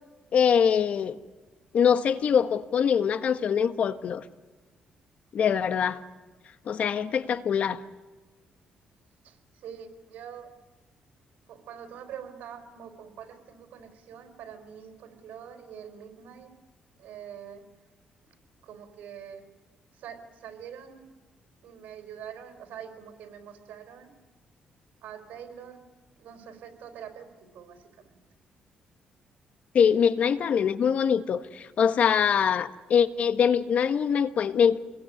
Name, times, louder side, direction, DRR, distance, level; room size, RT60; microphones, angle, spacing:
voice 1, 0.3-1.2 1.7-4.2 5.3-6.0 6.7-7.8 29.7-34.8, left 7 dB, 60° left, 12 dB, 1.3 m, -23 dB
voice 2, 9.2-10.5 11.5-16.5 17.0-17.6 18.6-19.4 19.9-21.2 21.6-24.1 25.0-25.8 26.2-28.2, right 8 dB, 85° right, 6 dB, 4.3 m, -44 dB
27.5 x 21.5 x 9.8 m, 1.3 s
cardioid pair, 105°, 3 cm